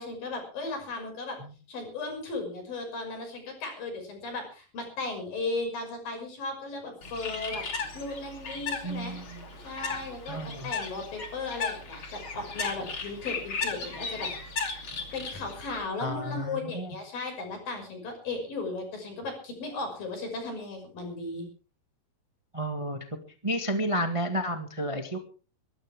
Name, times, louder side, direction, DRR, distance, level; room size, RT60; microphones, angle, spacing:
voice 1, 0.0-1.4 1.7-7.6 7.9-9.2 9.6-14.3 15.1-21.5, left 3 dB, 60° left, 4 dB, 7.6 m, -36 dB
Bird, 7.0-15.9, left 4 dB, 35° left, 3.1 m, -36 dB
voice 2, 8.8-9.4 10.3-10.7 16.0-16.9 22.5-23.0 23.4-25.2, equal, 45° right, 5 dB, 0.4 m, -31 dB
23.0 x 14.0 x 3.5 m, 0.36 s
omnidirectional pair, 4.5 m